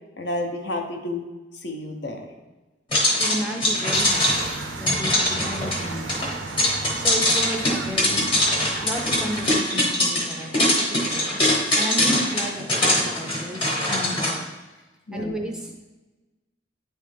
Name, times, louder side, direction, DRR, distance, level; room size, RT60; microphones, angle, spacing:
voice 1, 0.2-1.2 1.6-2.3 15.1-15.4, left 2 dB, 60° left, 3 dB, 0.8 m, -30 dB
sound 1, 2.9-14.3, left 1 dB, 25° left, 1.1 m, -22 dB
voice 2, 3.2-6.3 6.7-8.4 8.8-11.4 11.8-14.4 15.1-15.9, equal, 5° right, 1 dB, 0.4 m, -33 dB
sound 2, 3.9-9.5, right 3 dB, 85° right, 0.5 m, -35 dB
8.9 x 3.2 x 3.3 m, 1.1 s
head